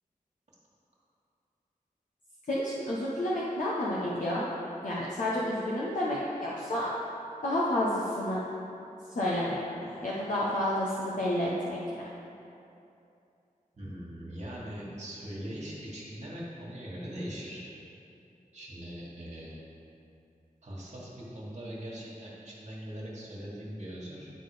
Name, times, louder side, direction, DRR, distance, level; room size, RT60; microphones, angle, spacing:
voice 1, 2.5-4.5 4.8-6.9 7.4-8.4 9.1-12.1, left 1 dB, 65° left, -7 dB, 1.0 m, -30 dB
voice 2, 13.8-17.6 18.5-19.5 20.6-24.3, equal, 55° right, -6 dB, 1.8 m, -41 dB
10.5 x 3.9 x 5.0 m, 2.7 s
wide cardioid pair, 95°, 14 cm